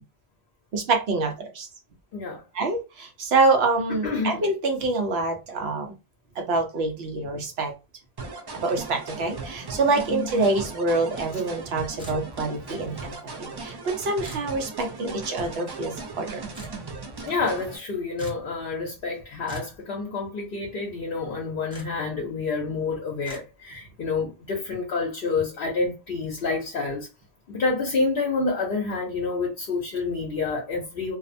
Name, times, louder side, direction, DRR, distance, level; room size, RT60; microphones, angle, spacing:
voice 1, 0.7-1.7 2.5-5.9 6.4-7.7 8.5-13.1 13.4-16.4, right 3 dB, 80° right, 1.0 m, -26 dB
voice 2, 2.1-2.4 4.0-4.4 10.1-10.3 17.3-27.1 27.5-31.2, left 4 dB, 65° left, 0.8 m, -28 dB
sound 1, 8.2-17.8, right 3 dB, 40° right, 0.3 m, -38 dB
sound 2, 12.0-12.5 14.2-14.5 16.5-16.8 18.2-18.5 19.5-19.8 21.7-21.9 23.2-23.4, right 3 dB, 5° right, 0.6 m, -40 dB
2.6 x 2.1 x 2.5 m
omnidirectional pair, 1.0 m